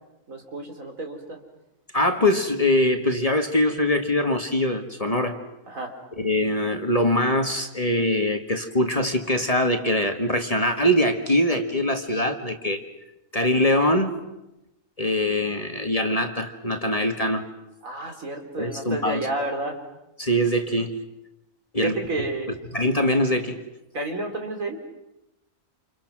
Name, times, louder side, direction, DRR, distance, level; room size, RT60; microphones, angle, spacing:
voice 1, 0.3-1.4 5.7-5.9 17.8-19.8 21.8-22.5 23.9-24.8, right 2 dB, 75° right, 3 dB, 4.0 m, -30 dB
voice 2, 1.9-5.4 6.2-12.8 13.3-14.2 15.0-17.4 18.6-19.2 20.2-20.9 21.7-22.0 22.7-23.6, left 1 dB, 25° left, 5 dB, 1.8 m, -23 dB
29.0 x 28.5 x 6.1 m, 0.93 s
omnidirectional pair, 1.4 m